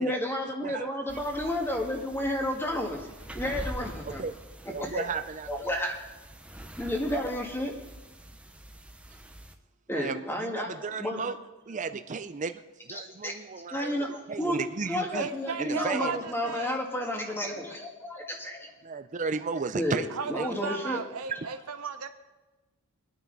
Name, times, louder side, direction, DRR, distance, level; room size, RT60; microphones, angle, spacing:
voice 1, 0.0-4.2 4.8-5.0 5.5-5.9 6.8-7.8 9.9-11.2 12.9-13.3 13.7-14.6 14.9-18.7 19.7-21.0, left 1 dB, 10° left, 1 dB, 1.8 m, -31 dB
sound 1, 1.1-9.5, equal, 5° right, 0.8 m, -44 dB
voice 2, 4.7-5.8 9.9-11.4 11.7-15.3 15.6-16.2 18.8-20.6, right 4 dB, 35° right, 10 dB, 0.5 m, -34 dB
voice 3, 15.1-16.8 17.5-17.8 20.1-22.1, right 5 dB, 75° right, 8 dB, 0.8 m, -36 dB
24.0 x 9.3 x 4.0 m, 1.1 s
head